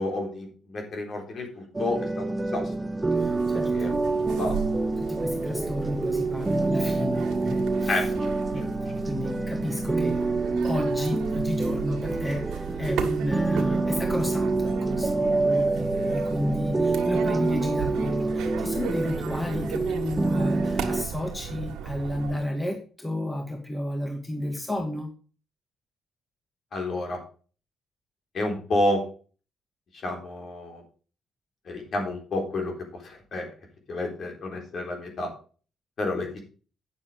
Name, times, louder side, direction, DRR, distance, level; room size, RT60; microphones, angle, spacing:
voice 1, 0.0-2.7 3.7-4.0 4.3-4.6 7.9-8.7 26.7-27.2 28.3-29.1 30.0-30.8 31.7-33.5 33.9-35.3 36.0-36.4, left 2 dB, 55° left, 2 dB, 3.8 m, -30 dB
sound 1, 1.7-21.0, right 3 dB, 15° right, 0.7 m, -27 dB
voice 2, 3.1-3.9 5.1-8.1 8.5-8.7 9.0-10.2 10.6-25.1, left 1 dB, 15° left, 3 dB, 1.8 m, -32 dB
sound 2, 3.1-22.4, right 8 dB, 85° right, 1.6 m, -36 dB
9.2 x 6.9 x 5.1 m, 0.38 s
cardioid pair, 90°, 0 cm